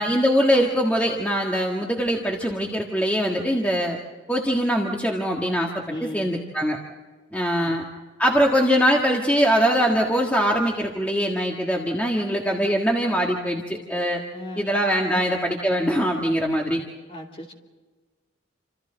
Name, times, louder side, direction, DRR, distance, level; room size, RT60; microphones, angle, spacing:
voice 1, 0.0-4.0 4.3-5.7 6.0-6.8 7.3-7.8 8.2-14.2 14.6-16.8, equal, 5° left, -1 dB, 1.6 m, -22 dB
voice 2, 5.9-6.4 7.6-7.8 14.3-14.7 15.1-15.2 17.1-17.5, left 1 dB, 25° left, 0 dB, 2.8 m, -36 dB
28.5 x 26.5 x 3.9 m, 1.4 s
head